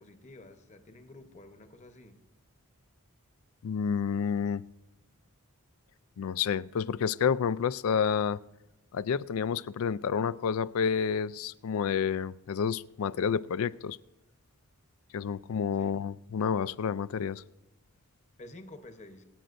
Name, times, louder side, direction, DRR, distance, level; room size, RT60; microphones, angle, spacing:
voice 1, 0.0-2.2 15.7-16.0 18.4-19.2, left 2 dB, 30° left, 0.9 m, -50 dB
voice 2, 3.6-4.6 6.2-8.4 8.9-14.0 15.1-17.4, left 7 dB, 70° left, 0.4 m, -29 dB
24.5 x 8.7 x 2.6 m
head